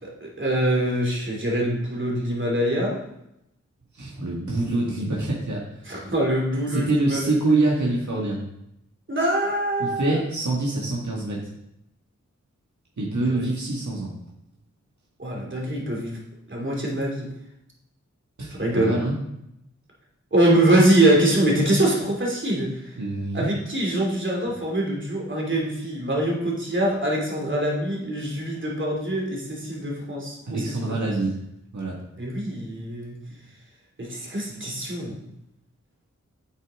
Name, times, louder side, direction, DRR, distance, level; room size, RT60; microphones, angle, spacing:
voice 1, 0.0-2.9 5.9-7.4 9.1-10.2 13.3-13.4 15.2-16.2 16.5-17.3 18.6-19.0 20.3-22.9 23.3-30.6 32.2-33.2 34.0-35.2, right 1 dB, 40° right, -2 dB, 2.8 m, -24 dB
voice 2, 3.9-5.7 6.7-8.4 9.8-11.4 13.0-14.1 18.4-19.2 23.0-23.5 30.5-31.3 31.7-32.0, right 2 dB, 70° right, -4 dB, 1.9 m, -25 dB
8.8 x 8.2 x 3.7 m, 0.82 s
wide cardioid pair, 65°, 30 cm